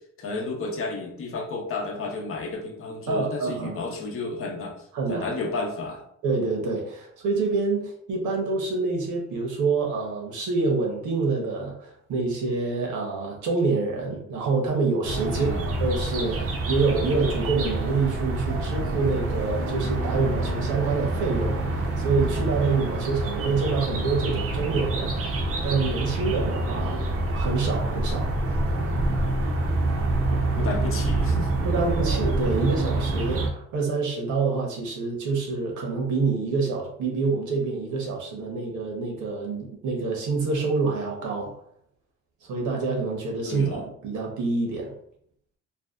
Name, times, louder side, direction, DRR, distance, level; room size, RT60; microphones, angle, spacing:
voice 1, 0.2-4.7 5.1-6.0 15.3-15.6 30.3-31.8 43.5-43.8, left 3 dB, 45° left, 1 dB, 0.7 m, -32 dB
voice 2, 3.1-3.8 4.9-5.3 6.2-15.5 15.8-25.2 25.6-28.3 31.6-41.6 42.4-44.9, right 4 dB, 75° right, 0 dB, 0.8 m, -27 dB
sound 1, 15.0-33.5, right 2 dB, 50° right, 0.5 m, -26 dB
2.6 x 2.2 x 2.3 m, 0.68 s
cardioid pair, 90°, 30 cm